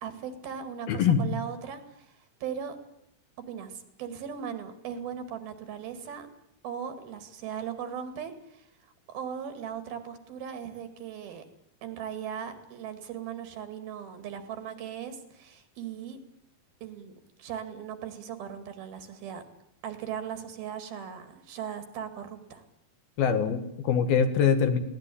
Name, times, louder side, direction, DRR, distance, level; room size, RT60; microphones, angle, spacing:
voice 1, 0.0-2.1 2.4-2.8 3.5-6.3 6.6-8.7 9.1-11.4 11.8-16.2 16.8-17.1 17.4-19.4 19.8-22.6, right 8 dB, 75° right, 9 dB, 4.0 m, -38 dB
voice 2, 0.9-1.4 23.2-24.8, left 7 dB, 75° left, 9 dB, 3.7 m, -24 dB
21.0 x 18.0 x 10.0 m, 0.79 s
omnidirectional pair, 4.3 m